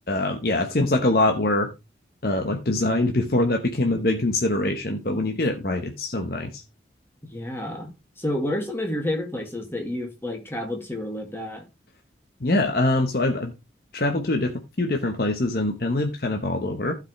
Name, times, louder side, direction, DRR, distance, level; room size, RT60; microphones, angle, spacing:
voice 1, 0.1-1.7 2.2-6.6 12.4-13.5 13.9-16.9, left 2 dB, 55° left, 1.1 m, -24 dB
voice 2, 7.3-7.9 8.2-11.6, left 1 dB, 15° left, 2.1 m, -29 dB
15.5 x 5.2 x 3.2 m
head